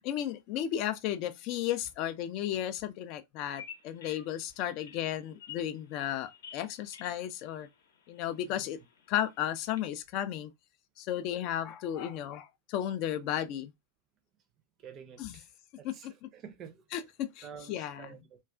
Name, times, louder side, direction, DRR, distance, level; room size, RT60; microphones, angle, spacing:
voice 1, 0.0-7.7 8.1-8.8 9.1-10.5 11.0-13.7 15.2-15.4 15.8-16.1 16.9-18.1, left 11 dB, 40° left, 0.3 m, -34 dB
Bird vocalization bird call bird song, 3.5-9.8, left 8 dB, 60° left, 0.7 m, -52 dB
voice 2, 14.8-15.5 15.8-16.8 17.4-18.4, right 7 dB, 30° right, 0.5 m, -49 dB
2.3 x 2.3 x 2.3 m
figure-of-eight pair, 90°, 0 cm